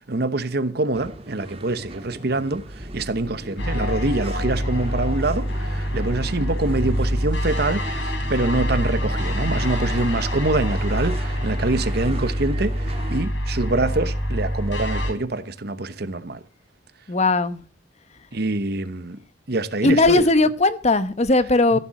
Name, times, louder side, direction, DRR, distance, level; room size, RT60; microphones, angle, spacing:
voice 1, 0.1-16.4 18.3-19.2 19.5-20.3 21.7-21.8, right 2 dB, 60° right, 1.1 m, -25 dB
sound 1, 0.9-13.2, right 1 dB, 30° right, 1.9 m, -38 dB
sound 2, 3.6-15.1, equal, 80° left, 4.4 m, -25 dB
voice 2, 17.1-17.6 19.8-21.8, left 2 dB, 35° left, 1.0 m, -18 dB
15.0 x 7.0 x 7.6 m
head